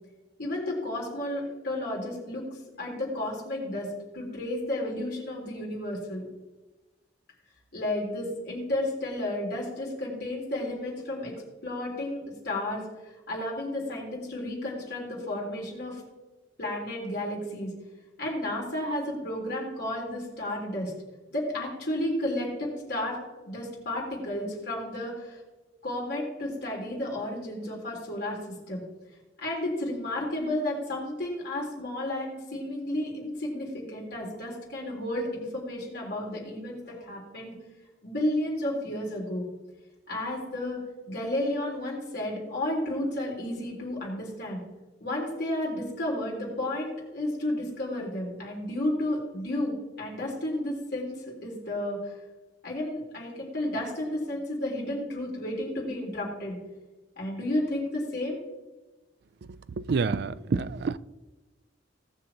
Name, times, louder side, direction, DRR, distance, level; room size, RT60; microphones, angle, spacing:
voice 1, 0.4-2.4 2.8-3.9 4.1-6.3 7.7-11.3 11.6-12.8 13.3-16.0 16.6-17.7 18.2-20.9 21.3-25.4 25.8-28.4 28.7-28.8 29.4-37.5 38.0-39.4 40.1-40.8 41.1-44.6 45.0-51.1 51.4-52.1 52.6-56.6 57.2-58.4, left 1 dB, 60° left, 3.7 m, -32 dB
voice 2, 59.8-61.0, right 4 dB, 60° right, 0.4 m, -28 dB
18.5 x 6.5 x 2.9 m
head